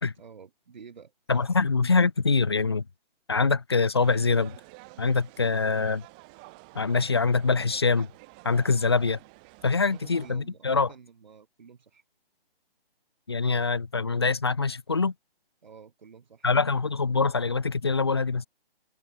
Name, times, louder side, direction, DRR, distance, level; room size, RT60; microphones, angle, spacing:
voice 1, 0.2-1.1 5.4-5.8 9.8-12.0 15.6-16.6, right 6 dB, 50° right, 4.9 m, -50 dB
voice 2, 1.3-2.8 3.3-4.6 5.0-6.0 6.7-8.1 8.4-9.2 9.6-10.9 13.3-15.1 16.4-18.5, left 4 dB, 25° left, 0.6 m, -24 dB
sound 1, 4.0-10.3, right 30 dB, 10° right, 1.1 m, -50 dB
hypercardioid pair, 170°, 30 cm